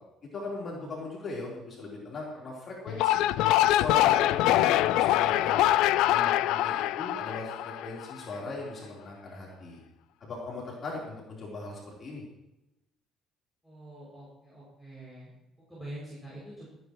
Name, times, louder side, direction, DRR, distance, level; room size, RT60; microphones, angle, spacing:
voice 1, 0.3-3.3 3.7-5.6 6.1-9.8 10.2-12.2, left 2 dB, 35° left, -4 dB, 3.8 m, -38 dB
sound 1, 2.9-8.2, left 14 dB, 85° left, 0.4 m, -24 dB
voice 2, 13.6-16.7, right 1 dB, ahead, -8 dB, 6.5 m, -45 dB
25.0 x 9.8 x 3.1 m, 0.91 s
cardioid pair, 145°, 0 cm